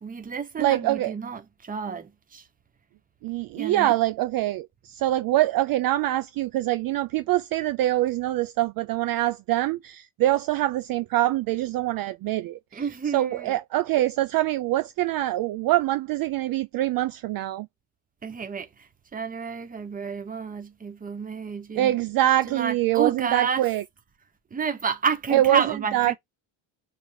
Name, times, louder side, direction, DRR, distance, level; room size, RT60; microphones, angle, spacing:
voice 1, 0.0-2.5 3.6-4.0 12.7-13.6 18.2-22.0 22.4-23.7 24.5-26.2, right 6 dB, 20° right, 0.9 m, -30 dB
voice 2, 0.6-1.1 3.2-12.8 13.1-17.7 21.8-23.8 25.3-25.6 25.9-26.2, right 15 dB, 50° right, 0.4 m, -24 dB
5.1 x 3.5 x 5.6 m
cardioid pair, 150°, 47 cm